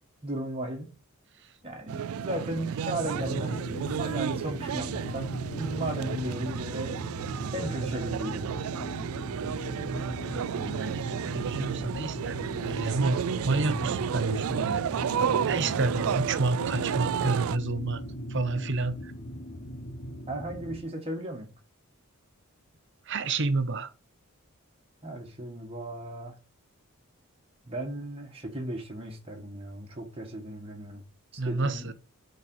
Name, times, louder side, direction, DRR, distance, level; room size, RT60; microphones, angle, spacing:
voice 1, 0.2-0.9 1.6-3.7 4.0-7.0 7.5-8.6 20.3-21.5 25.0-26.4 27.6-31.0 31.3-31.9, right 1 dB, 25° right, 1.7 m, -36 dB
sound 1, 1.9-17.6, right 7 dB, 75° right, 0.4 m, -32 dB
sound 2, 3.0-20.8, equal, 45° left, 1.1 m, -38 dB
voice 2, 9.3-15.1 15.5-18.0 18.3-19.1 23.1-23.9 31.4-31.9, right 3 dB, 55° right, 0.8 m, -30 dB
9.6 x 4.1 x 4.7 m
head